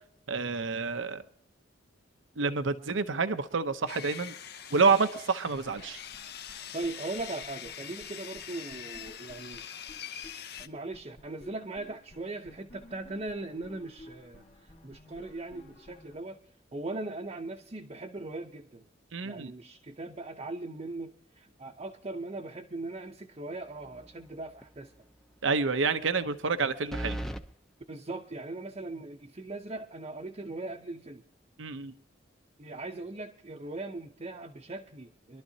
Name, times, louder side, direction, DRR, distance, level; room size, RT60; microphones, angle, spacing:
voice 1, 0.3-1.2 2.4-4.3 4.7-6.0 19.1-19.5 25.4-27.2 31.6-31.9, right 4 dB, 80° right, 10 dB, 0.7 m, -28 dB
Sawing, 3.9-10.7, left 9 dB, 55° left, 0.8 m, -43 dB
sound 1, 5.5-8.1 8.4-8.5 8.7-10.3 10.6-10.7 10.9-16.2, left 1 dB, 35° left, 1.6 m, -54 dB
voice 2, 6.7-9.7 10.6-16.4 16.7-18.9 19.2-24.9 27.9-31.2 32.6-35.4, right 2 dB, 35° right, 2 dB, 0.7 m, -39 dB
sound 2, 23.8-24.3 24.6-24.7 26.9-27.4, right 1 dB, ahead, 0.6 m, -36 dB
24.0 x 12.0 x 2.8 m, 0.63 s
head